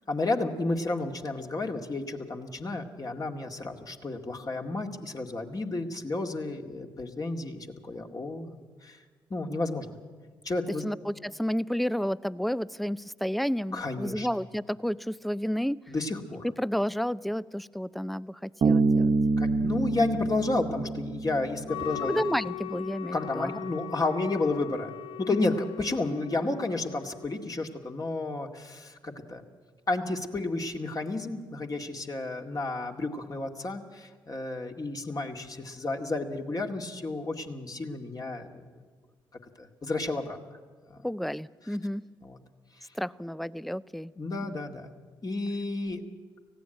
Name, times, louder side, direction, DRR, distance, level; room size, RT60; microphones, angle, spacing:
voice 1, 0.1-8.6 8.8-9.0 9.3-10.0 10.4-10.8 13.7-14.3 15.9-16.5 19.4-22.2 23.1-24.9 25.2-29.4 29.9-38.6 39.6-40.4 40.9-41.0 42.2-42.4 44.2-44.9 45.2-46.0, left 2 dB, 35° left, 3 dB, 2.1 m, -32 dB
voice 2, 10.8-15.8 16.6-19.2 22.0-23.6 25.3-25.6 41.0-42.0 42.9-44.1 44.4-44.5, equal, ahead, 20 dB, 0.5 m, -31 dB
Bass guitar, 18.6-22.1, right 3 dB, 50° right, 0.9 m, -26 dB
Wind instrument woodwind instrument, 21.6-27.5, left 9 dB, 50° left, 1.3 m, -40 dB
18.5 x 15.5 x 9.2 m, 1.5 s
hypercardioid pair, 45°, 11 cm